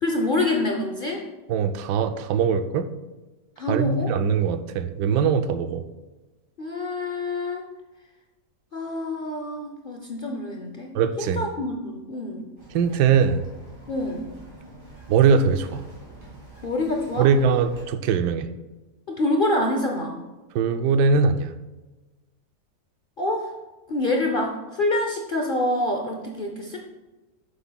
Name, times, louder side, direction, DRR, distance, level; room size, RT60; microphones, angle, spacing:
voice 1, 0.0-1.2 3.6-4.1 6.6-7.7 8.7-10.9 11.2-12.5 13.9-14.3 16.6-17.3 19.1-20.2 23.2-23.5 23.9-26.8, left 2 dB, 50° left, 1 dB, 0.6 m, -26 dB
voice 2, 1.5-2.9 3.7-5.8 10.9-11.4 12.7-13.4 15.1-15.8 17.2-18.5 20.5-21.5, right 6 dB, 90° right, 9 dB, 1.2 m, -21 dB
Bird vocalization bird call bird song, 12.6-17.8, right 2 dB, 30° right, 2.5 m, -46 dB
9.3 x 6.9 x 2.3 m, 1.2 s
omnidirectional pair, 1.8 m